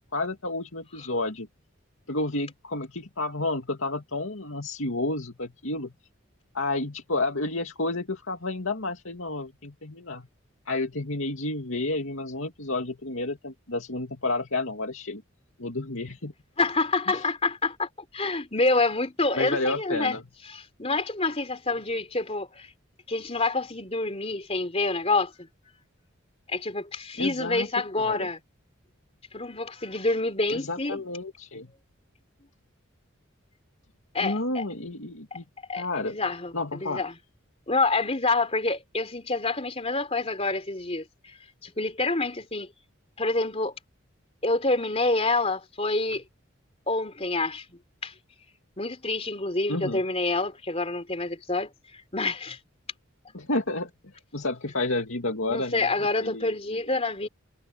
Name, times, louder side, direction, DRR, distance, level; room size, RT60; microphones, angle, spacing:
voice 1, 0.0-1.5 2.1-5.9 6.5-10.3 10.7-15.2 15.6-16.3 17.1-17.2 19.4-20.2 27.2-27.7 28.0-28.3 30.5-31.7 34.2-35.4 35.8-36.2 36.5-37.0 49.7-50.0 53.3-55.9 56.2-57.3, left 2 dB, 75° left, 2.5 m, -31 dB
voice 2, 16.6-17.9 18.1-20.2 20.8-22.7 23.1-25.5 26.5-28.4 29.3-31.0 34.1-34.6 35.3-35.4 35.7-36.5 36.8-37.1 37.7-41.3 41.6-42.7 43.2-43.7 44.4-46.2 46.9-47.6 48.0-48.1 48.8-51.7 52.1-52.6 55.5-57.3, left 3 dB, 30° left, 3.5 m, -27 dB
head